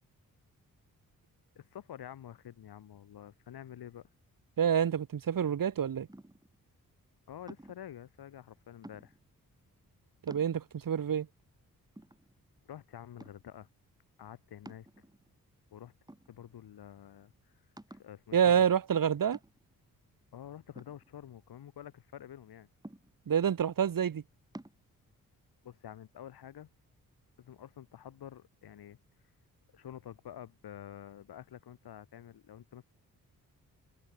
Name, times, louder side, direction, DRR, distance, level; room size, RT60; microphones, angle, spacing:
voice 1, 1.5-4.1 7.3-9.1 12.6-13.7 14.2-14.9 15.7-15.9 16.3-17.3 17.9-18.7 20.3-22.7 25.6-26.7 27.4-29.0 29.7-32.8, left 10 dB, 85° left, 8.0 m, -48 dB
voice 2, 4.6-6.1 10.2-11.3 18.3-19.4 23.3-24.2, right 8 dB, 65° right, 2.4 m, -27 dB
sound 1, 6.1-6.6 7.5-7.9 8.8-9.3 9.9-10.0 10.3-10.9 11.5-11.6 12.0-12.7 13.2-13.6 14.7-15.4 16.1-16.7 17.1-17.2 17.8-18.2 19.3-19.8 20.8-21.7 22.8-23.4 24.5-24.8, right 1 dB, 10° right, 5.7 m, -51 dB
cardioid pair, 65°, 37 cm